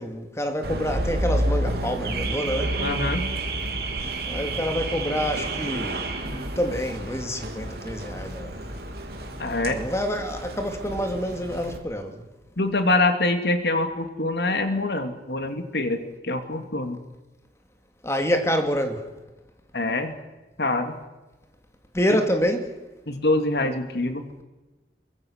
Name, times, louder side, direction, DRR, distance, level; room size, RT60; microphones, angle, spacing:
voice 1, 0.0-2.8 4.3-8.6 9.6-12.2 18.0-19.1 21.9-22.8, equal, 15° left, 2.6 m, -27 dB
Car / Alarm, 0.6-11.8, right 1 dB, 60° right, 3.2 m, -30 dB
voice 2, 2.8-3.3 9.4-9.8 12.6-17.0 19.7-20.1 20.6-20.9 23.1-24.2, left 2 dB, 65° left, 2.4 m, -25 dB
23.5 x 23.5 x 6.6 m
head